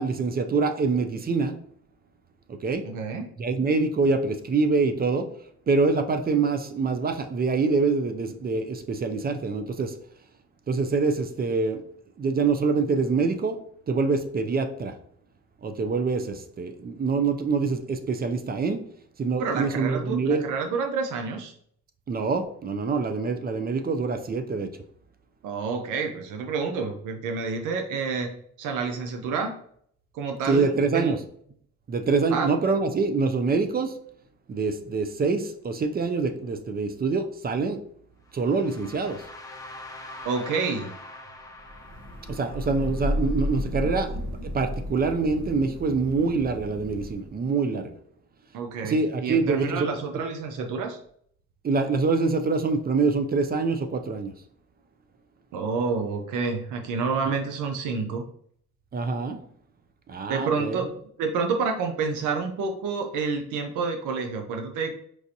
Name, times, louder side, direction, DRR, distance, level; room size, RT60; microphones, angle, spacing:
voice 1, 0.0-1.6 2.5-2.9 3.4-5.3 5.7-9.9 10.7-11.8 12.2-13.6 13.9-14.9 15.6-18.8 19.2-20.5 22.1-24.7 30.4-31.2 31.9-34.0 34.5-37.8 38.3-39.3 42.3-47.9 48.8-50.0 51.6-54.3 57.3-57.4 58.9-59.4 60.1-60.9, right 4 dB, 30° right, 7 dB, 0.4 m, -25 dB
voice 2, 2.8-3.2 19.4-21.5 25.4-28.3 28.6-29.5 30.1-31.1 32.3-32.5 40.2-40.9 48.5-51.0 55.5-58.3 60.3-60.9 61.2-65.0, right 4 dB, 85° right, 4 dB, 0.6 m, -29 dB
sound 1, 38.3-44.2, left 2 dB, 10° left, 0.7 m, -44 dB
Thunder / Rain, 41.7-47.4, equal, 65° right, 1.0 m, -33 dB
4.7 x 2.5 x 2.7 m, 0.65 s
cardioid pair, 90°, 30 cm